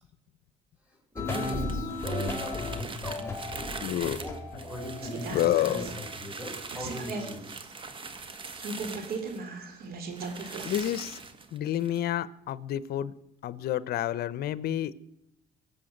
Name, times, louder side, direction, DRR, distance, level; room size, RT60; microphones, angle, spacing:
voice 1, 0.9-3.7 4.0-7.6, equal, 5° right, 1 dB, 5.8 m, -40 dB
sound 1, 1.2-6.2, left 2 dB, 15° left, 3.2 m, -35 dB
sound 2, 1.3-9.5 9.8-9.9 10.1-12.0, right 4 dB, 30° right, 1.7 m, -42 dB
voice 2, 3.8-4.2 5.3-5.9 10.3-11.2 11.5-13.1 13.4-14.9, left 12 dB, 65° left, 18 dB, 0.9 m, -29 dB
sound 3, 5.0-10.8 11.1-11.2, right 4 dB, 65° right, 3.0 m, -38 dB
23.5 x 8.0 x 6.6 m, 0.83 s
cardioid pair, 110°, 17 cm